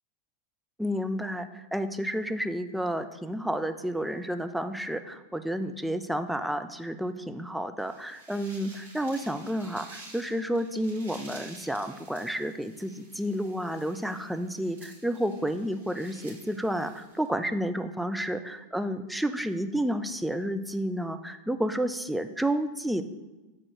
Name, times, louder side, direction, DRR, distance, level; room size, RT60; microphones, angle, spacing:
voice 1, 0.8-23.0, equal, ahead, 8 dB, 0.4 m, -31 dB
sound 1, 7.8-17.3, right 2 dB, 65° right, 1.9 m, -51 dB
6.7 x 3.7 x 6.0 m, 1.1 s
figure-of-eight pair, 90°, 0 cm